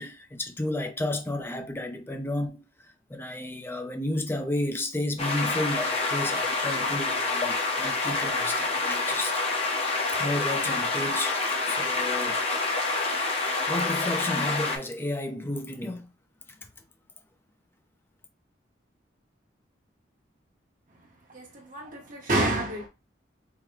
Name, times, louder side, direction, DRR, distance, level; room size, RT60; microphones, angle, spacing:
voice 1, 0.0-2.6 3.1-9.4 9.8-12.4 13.7-16.1, left 1 dB, 10° left, 0.5 m, -32 dB
sound 1, 5.2-14.8, left 3 dB, 35° left, 0.9 m, -27 dB
voice 2, 21.3-22.9, right 1 dB, 45° right, 1.1 m, -28 dB
3.7 x 2.2 x 4.4 m
head